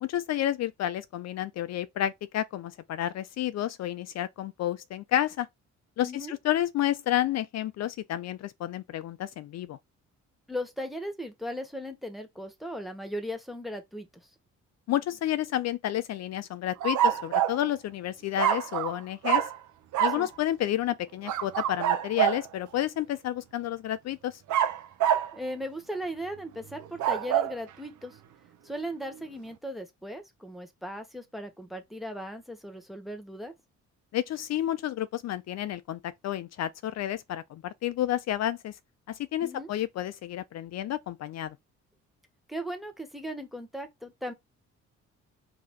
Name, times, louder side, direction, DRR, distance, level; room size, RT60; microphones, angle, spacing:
voice 1, 0.0-5.5 6.0-9.8 14.9-19.5 20.0-24.4 34.1-38.8 39.1-41.6, left 12 dB, 60° left, 0.4 m, -30 dB
voice 2, 6.0-6.3 10.5-14.3 20.1-20.3 25.3-28.2 28.6-33.5 39.4-39.7 42.5-44.3, equal, ahead, 1.2 m, -37 dB
sound 1, 16.8-17.6 18.4-19.0 19.2-19.6 19.9-20.2 21.3-22.5 24.5-25.3 26.8-27.5, right 10 dB, 75° right, 0.7 m, -26 dB
5.0 x 2.8 x 3.6 m
cardioid pair, 90°, 30 cm